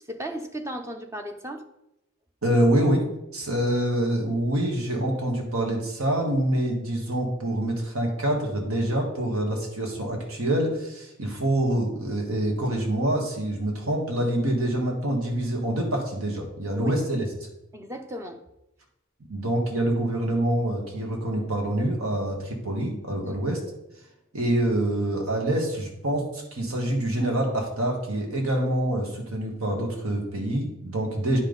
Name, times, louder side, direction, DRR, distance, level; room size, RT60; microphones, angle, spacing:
voice 1, 0.1-1.6 16.7-16.9 17.7-18.4 23.2-23.4, equal, 15° right, 6 dB, 0.5 m, -35 dB
voice 2, 2.4-3.0 3.3-17.2 19.3-23.6 24.3-31.4, right 1 dB, 85° right, 1 dB, 1.7 m, -26 dB
9.6 x 5.3 x 4.0 m, 0.87 s
head